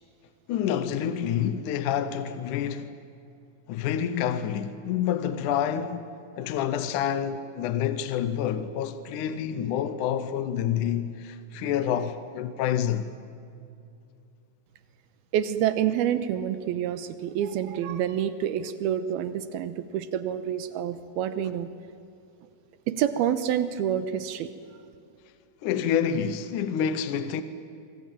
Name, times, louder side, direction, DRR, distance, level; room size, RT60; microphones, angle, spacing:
voice 1, 0.5-3.0 3.7-6.1 6.4-13.1 25.6-27.4, left 9 dB, 70° left, 2.1 m, -28 dB
voice 2, 15.3-21.7 22.9-24.5, right 10 dB, 85° right, 2.8 m, -27 dB
26.0 x 24.0 x 8.9 m
omnidirectional pair, 4.4 m